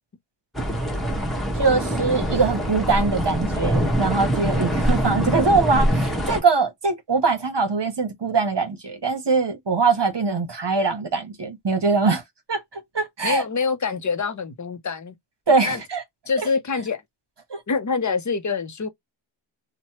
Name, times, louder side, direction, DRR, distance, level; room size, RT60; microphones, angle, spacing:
sound 1, 0.5-6.4, equal, ahead, 1.1 m, -24 dB
voice 1, 1.6-12.2 12.5-13.4 15.5-16.0 17.5-17.6, right 4 dB, 60° right, 1.0 m, -22 dB
voice 2, 13.2-15.1 15.6-15.8 16.3-17.0 17.7-18.9, left 5 dB, 40° left, 0.6 m, -25 dB
3.0 x 2.2 x 2.8 m
wide cardioid pair, 65°, 48 cm